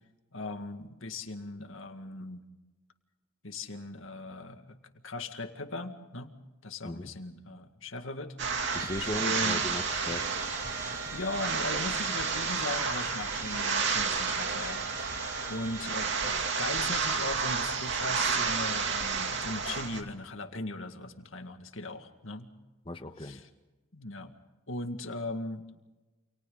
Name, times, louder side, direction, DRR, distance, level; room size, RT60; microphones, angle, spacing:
voice 1, 0.3-2.4 3.4-4.6 5.0-6.3 6.6-8.8 9.2-9.6 11.1-22.5 23.2-23.4 23.9-24.3 24.7-25.6, left 2 dB, 65° left, 6 dB, 2.0 m, -38 dB
sound 1, 8.4-20.0, right 5 dB, 55° right, 2.7 m, -31 dB
Trumpet, 8.6-16.7, right 3 dB, 10° right, 2.9 m, -44 dB
voice 2, 8.7-10.3 22.8-23.4, left 1 dB, 25° left, 6 dB, 1.3 m, -37 dB
29.0 x 28.0 x 4.0 m, 1.1 s
head